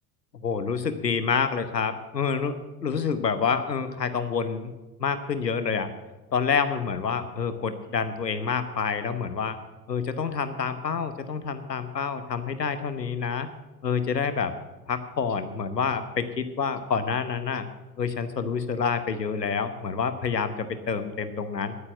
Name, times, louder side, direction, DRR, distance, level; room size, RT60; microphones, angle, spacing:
voice 1, 0.4-4.7 5.0-5.9 6.3-9.6 9.9-13.5 13.8-14.5 14.9-17.7 18.0-21.8, left 6 dB, 85° left, 11 dB, 1.0 m, -28 dB
10.5 x 9.7 x 8.9 m, 1.1 s
figure-of-eight pair, 70°, 48 cm